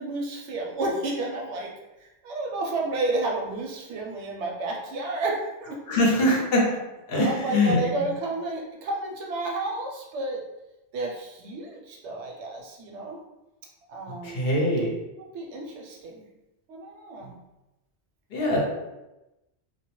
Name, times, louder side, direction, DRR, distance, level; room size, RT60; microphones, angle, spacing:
voice 1, 0.0-1.7 2.0-6.0 7.1-10.4 10.9-13.2 13.9-14.5 15.2-16.2 16.7-17.3, right 2 dB, 80° right, 0 dB, 0.9 m, -31 dB
voice 2, 5.9-6.6 7.1-7.8 14.2-14.9 18.3-18.6, left 1 dB, 65° left, -2 dB, 0.8 m, -22 dB
2.2 x 2.0 x 2.9 m, 0.99 s
omnidirectional pair, 1.2 m